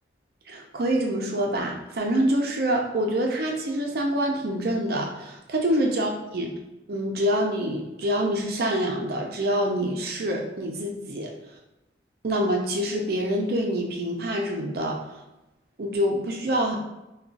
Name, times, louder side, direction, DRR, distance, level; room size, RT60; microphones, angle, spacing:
voice 1, 0.5-6.5 6.9-11.3 12.2-15.0 15.8-16.8, right 1 dB, 55° right, 1 dB, 0.5 m, -26 dB
2.3 x 2.3 x 3.8 m, 0.94 s
head